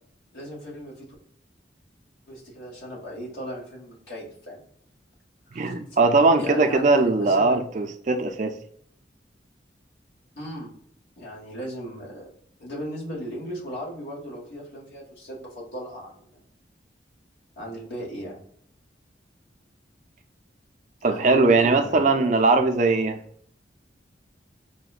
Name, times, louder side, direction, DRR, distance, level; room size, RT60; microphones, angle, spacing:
voice 1, 0.3-1.1 2.3-4.6 5.5-5.7 6.4-7.6 10.3-10.7 11.2-12.3 12.6-16.4 17.6-18.4 21.0-22.3, equal, 75° left, -5 dB, 1.5 m, -37 dB
voice 2, 5.5-8.5 21.0-23.2, right 3 dB, 40° right, 6 dB, 0.4 m, -20 dB
5.1 x 2.1 x 2.3 m, 0.64 s
head